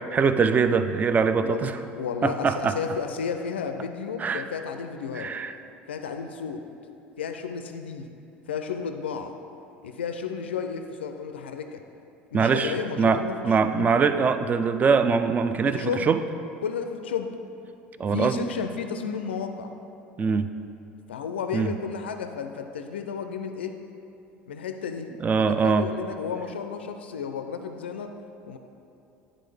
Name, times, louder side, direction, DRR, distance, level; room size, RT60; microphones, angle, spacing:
voice 1, 0.1-1.8 2.2-2.8 4.2-4.4 5.1-5.5 12.3-16.2 18.0-18.4 20.2-20.5 21.5-21.7 25.2-25.9, right 5 dB, 25° right, 10 dB, 0.4 m, -23 dB
voice 2, 1.4-5.3 5.9-6.6 7.2-8.1 8.5-9.3 9.8-11.8 12.3-13.9 15.7-16.1 16.6-17.3 18.1-19.7 21.1-23.8 24.5-25.1 25.4-28.2 28.4-28.6, left 6 dB, 85° left, 7 dB, 0.4 m, -32 dB
10.0 x 3.7 x 3.3 m, 2.8 s
hypercardioid pair, 70°, 6 cm